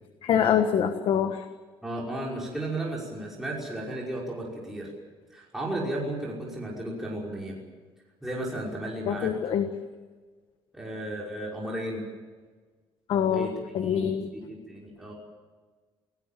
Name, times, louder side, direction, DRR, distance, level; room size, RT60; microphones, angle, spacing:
voice 1, 0.2-1.5 9.1-9.7 13.1-14.3, left 8 dB, 60° left, 8 dB, 1.4 m, -25 dB
voice 2, 1.8-4.9 5.3-7.6 8.2-9.3 10.7-12.0 13.3-13.5 13.8-15.1, right 1 dB, 5° right, -4 dB, 5.6 m, -34 dB
28.0 x 18.0 x 7.5 m, 1.4 s
cardioid pair, 150°, 10 cm